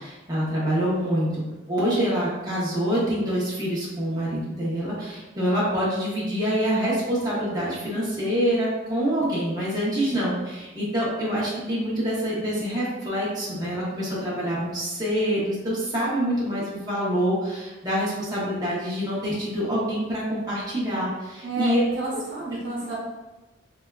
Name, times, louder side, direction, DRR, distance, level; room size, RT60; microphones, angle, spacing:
voice 1, 0.0-1.4 1.7-21.8 22.1-22.2, equal, 20° right, -8 dB, 0.6 m, -26 dB
voice 2, 21.4-23.0, right 3 dB, 65° right, -5 dB, 0.8 m, -30 dB
3.2 x 2.2 x 2.2 m, 1.1 s
head